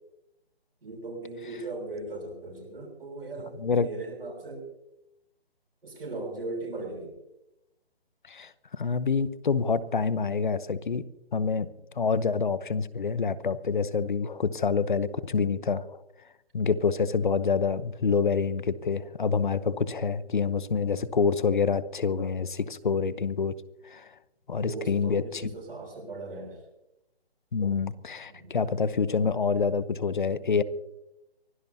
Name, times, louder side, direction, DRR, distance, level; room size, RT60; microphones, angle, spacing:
voice 1, 0.8-4.6 5.8-7.1 24.6-26.6 28.3-28.5, right 2 dB, 65° right, -4 dB, 6.5 m, -38 dB
voice 2, 8.3-11.0 11.3-11.7 11.9-16.0 16.5-23.5 23.8-24.1 24.5-25.5 27.5-30.6, left 5 dB, 50° left, 16 dB, 0.9 m, -27 dB
24.0 x 16.5 x 2.8 m, 0.89 s
hypercardioid pair, 175°, 32 cm